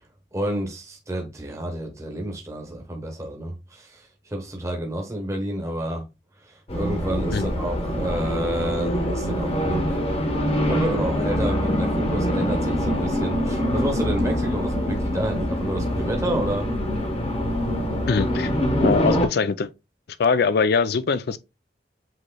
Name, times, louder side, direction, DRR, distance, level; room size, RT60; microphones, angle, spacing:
voice 1, 0.3-6.0 6.4-10.0 10.7-16.7, right 1 dB, 15° right, 1.0 m, -29 dB
Race car auto racing, 6.7-19.3, equal, 35° left, 1.0 m, -24 dB
voice 2, 18.1-18.5 18.8-19.7 20.2-21.4, left 5 dB, 60° left, 0.4 m, -22 dB
7.7 x 3.1 x 2.2 m
head